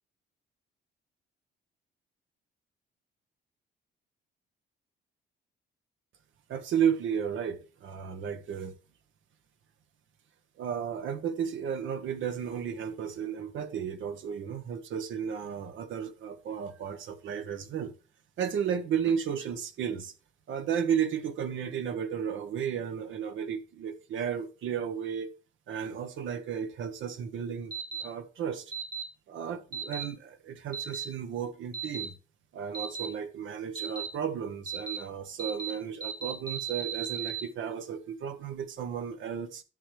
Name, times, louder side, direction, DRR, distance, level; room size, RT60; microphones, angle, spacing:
voice 1, 6.5-8.7 10.6-17.9 18.4-20.1 20.5-25.3 25.7-27.7 28.0-28.7 29.3-32.2 32.5-39.6, right 8 dB, 75° right, 1.2 m, -33 dB
sound 1, 27.7-28.0 28.7-29.0 29.7-30.0 30.7-31.0 31.7-32.0 32.7-33.1 33.7-34.1 34.7-35.0 35.4-35.7 36.0-37.4, right 8 dB, 45° right, 1.9 m, -35 dB
11.0 x 6.9 x 3.3 m
cardioid pair, 90°, 20 cm